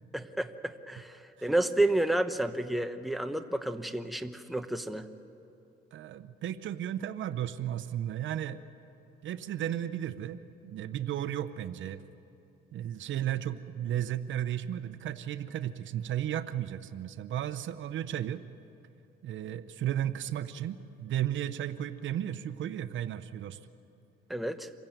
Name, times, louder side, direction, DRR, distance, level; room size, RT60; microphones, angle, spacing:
voice 1, 0.1-5.1 24.3-24.7, right 1 dB, ahead, 7 dB, 1.1 m, -30 dB
voice 2, 5.9-8.6 9.2-12.1 12.7-18.4 19.2-23.6, right 11 dB, 75° right, 12 dB, 0.8 m, -34 dB
26.5 x 16.0 x 9.2 m, 2.8 s
cardioid pair, 90°, 20 cm